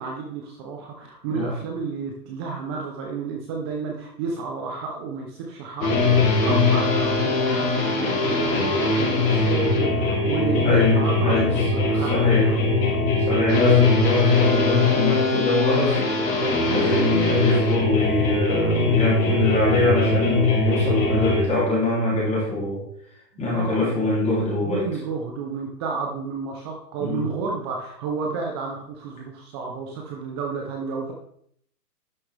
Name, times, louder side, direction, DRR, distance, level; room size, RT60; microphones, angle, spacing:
voice 1, 0.0-12.9 23.5-24.0 24.6-31.1, right 4 dB, 15° right, 1 dB, 0.6 m, -31 dB
sound 1, 5.8-21.4, left 3 dB, 70° left, 4.3 m, -21 dB
voice 2, 10.6-11.5 11.9-12.4 13.2-16.0 16.7-22.8 23.4-24.8 27.0-27.2, left 1 dB, 15° left, -5 dB, 3.1 m, -23 dB
11.5 x 6.4 x 3.4 m, 0.67 s
hypercardioid pair, 145°, 50 cm